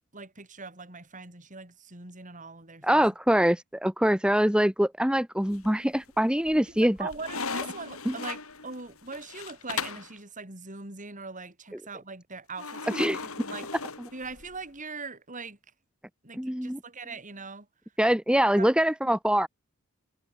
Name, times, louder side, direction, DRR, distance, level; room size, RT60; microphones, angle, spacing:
voice 1, 0.1-3.0 6.5-13.2 13.4-13.7 14.1-15.6 16.2-17.7 18.6-18.7, right 4 dB, 40° right, 5.5 m, -41 dB
voice 2, 2.8-7.1 8.0-8.1 12.9-13.2 16.3-16.8 18.0-19.5, equal, 5° right, 1.6 m, -24 dB
sound 1, 5.5-6.0 6.5-10.1 12.6-14.6, left 5 dB, 85° left, 6.0 m, -37 dB
head